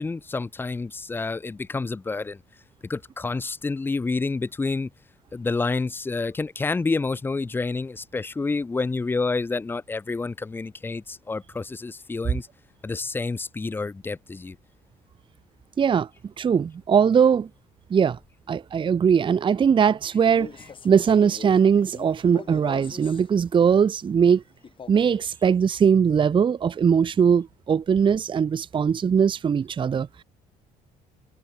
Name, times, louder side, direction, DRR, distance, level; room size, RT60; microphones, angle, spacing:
voice 1, 0.0-2.4 2.8-4.9 5.3-12.5 12.8-14.6, left 3 dB, 10° left, 0.4 m, -28 dB
voice 2, 15.8-16.1 16.4-17.5 17.9-18.2 18.5-20.5 20.8-24.4 24.9-30.1, right 7 dB, 30° right, 0.6 m, -20 dB
Male speech man speaking, 20.2-23.3 24.6-25.3, left 6 dB, 30° left, 1.0 m, -42 dB
cardioid pair, 110°, 17 cm